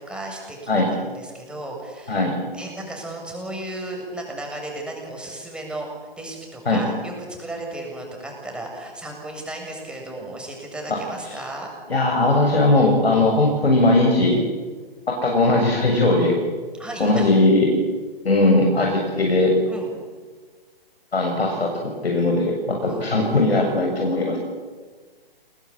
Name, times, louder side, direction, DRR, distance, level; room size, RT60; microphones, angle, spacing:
voice 1, 0.0-2.2 2.5-5.9 6.2-11.7 16.7-17.3 19.7-19.9 22.9-23.1, right 1 dB, 5° right, 0 dB, 7.4 m, -35 dB
voice 2, 11.9-14.4 15.1-16.4 17.0-17.7 18.2-19.5 21.1-24.4, left 2 dB, 85° left, 1 dB, 7.0 m, -19 dB
30.0 x 20.5 x 8.8 m, 1.4 s
hypercardioid pair, 140°, 30 cm